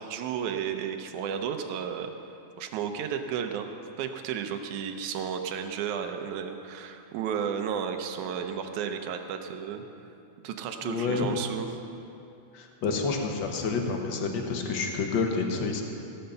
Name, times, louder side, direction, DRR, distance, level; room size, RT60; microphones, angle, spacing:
voice 1, 0.0-2.1 2.6-3.7 4.0-9.8 10.4-11.7, right 8 dB, 85° right, 6 dB, 2.2 m, -33 dB
voice 2, 10.8-11.3 12.5-15.8, left 4 dB, 60° left, 2 dB, 1.3 m, -29 dB
17.5 x 6.6 x 6.7 m, 2.7 s
omnidirectional pair, 3.3 m